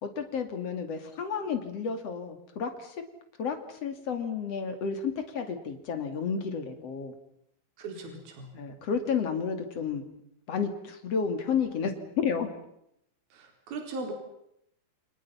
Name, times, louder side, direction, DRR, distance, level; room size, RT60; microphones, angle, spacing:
voice 1, 0.0-3.0 3.4-7.1 8.5-10.0 10.5-12.5, left 6 dB, 40° left, 6 dB, 2.6 m, -31 dB
voice 2, 7.8-8.5 13.3-14.1, right 3 dB, 50° right, 3 dB, 5.6 m, -38 dB
29.5 x 28.0 x 5.7 m, 0.77 s
omnidirectional pair, 5.8 m